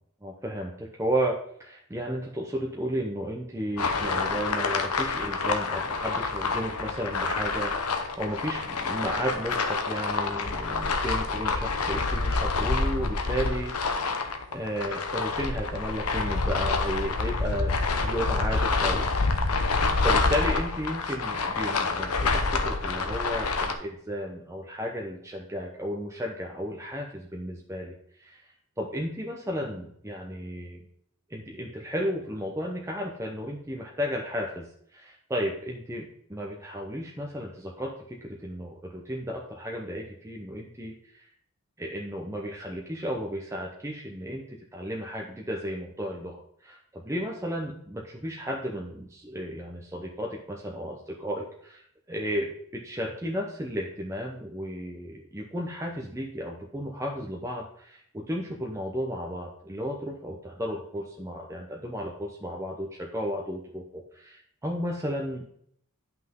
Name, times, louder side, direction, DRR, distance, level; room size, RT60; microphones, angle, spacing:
voice 1, 0.2-14.0 14.5-17.8 18.0-30.8 31.3-34.7 34.9-41.3 41.8-65.4, equal, 15° right, 0 dB, 0.8 m, -34 dB
sound 1, 3.8-23.7, left 3 dB, 85° left, 1.0 m, -27 dB
10.0 x 5.9 x 3.7 m, 0.66 s
head